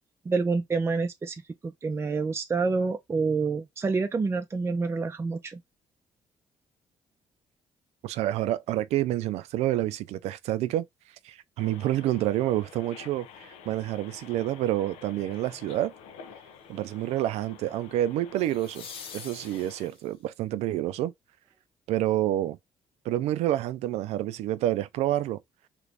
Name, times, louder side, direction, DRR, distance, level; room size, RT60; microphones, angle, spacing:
voice 1, 0.3-5.6, right 4 dB, 25° right, 0.5 m, -28 dB
voice 2, 8.0-10.9 11.2-15.9 16.7-18.9 19.1-21.1 21.9-22.6 23.0-25.4, right 13 dB, 85° right, 0.4 m, -28 dB
sound 1, 11.6-19.9, left 7 dB, 85° left, 0.6 m, -49 dB
sound 2, 15.3-15.7 18.4-20.2 23.1-23.2, left 6 dB, 60° left, 0.9 m, -45 dB
3.0 x 2.6 x 3.4 m
cardioid pair, 85°, 11 cm